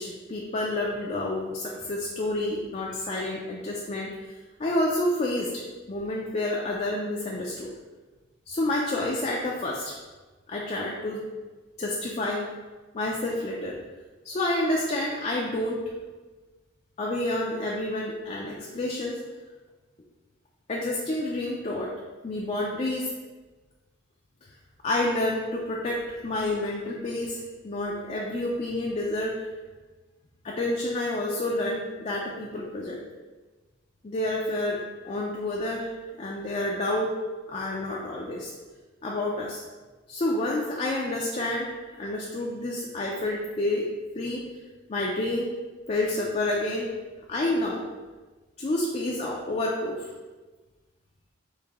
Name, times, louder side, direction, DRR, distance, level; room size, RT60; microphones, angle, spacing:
voice 1, 0.0-4.3 4.6-5.6 5.9-7.7 8.5-10.0 10.5-11.3 11.8-12.5 12.9-13.8 14.2-15.8 17.0-19.2 20.7-21.9 22.2-23.1 24.8-29.4 30.4-33.0 34.0-35.9 36.2-37.2 37.5-38.5 39.0-39.6 40.1-41.7 42.0-43.9 44.2-44.4 44.9-45.5 45.9-46.9 47.3-47.8 48.6-50.1, left 1 dB, 35° left, -2 dB, 0.4 m, -29 dB
4.8 x 2.6 x 3.5 m, 1.3 s
head